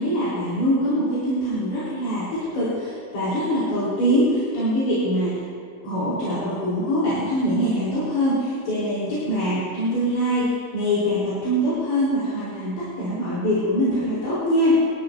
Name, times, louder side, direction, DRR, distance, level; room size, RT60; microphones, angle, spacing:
voice 1, 0.0-5.4 5.8-14.8, equal, 80° left, -10 dB, 6.5 m, -23 dB
25.5 x 15.0 x 2.8 m, 2.6 s
omnidirectional pair, 4.5 m